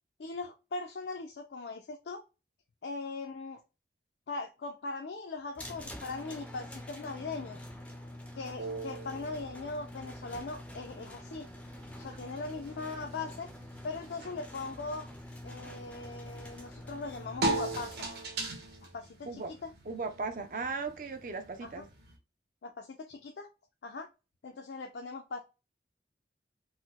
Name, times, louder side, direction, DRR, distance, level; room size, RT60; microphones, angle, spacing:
voice 1, 0.2-2.2 2.8-3.6 4.3-7.6 8.3-11.5 12.0-13.5 13.8-15.1 15.4-18.1 18.9-19.7 21.6-21.8 22.6-23.5 23.8-24.1 24.4-25.4, left 3 dB, 75° left, 0.4 m, -40 dB
sound 1, 5.6-18.0, left 1 dB, 5° left, 0.4 m, -46 dB
sound 2, 8.6-22.2, right 2 dB, 65° right, 1.2 m, -41 dB
voice 2, 19.9-21.9, right 4 dB, 50° right, 0.5 m, -37 dB
4.1 x 2.1 x 2.2 m
head